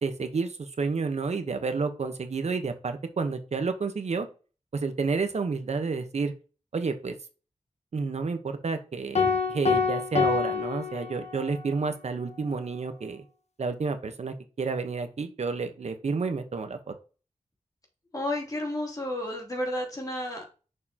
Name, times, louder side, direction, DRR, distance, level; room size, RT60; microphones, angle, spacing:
voice 1, 0.0-4.3 4.7-6.3 6.7-7.2 7.9-13.2 13.6-16.9, right 4 dB, 65° right, 8 dB, 1.0 m, -30 dB
sound 1, 9.1-11.6, left 5 dB, 65° left, 1.4 m, -26 dB
voice 2, 18.1-20.5, left 1 dB, 30° left, 0 dB, 2.9 m, -32 dB
6.7 x 6.6 x 2.9 m, 0.34 s
wide cardioid pair, 95°, 12 cm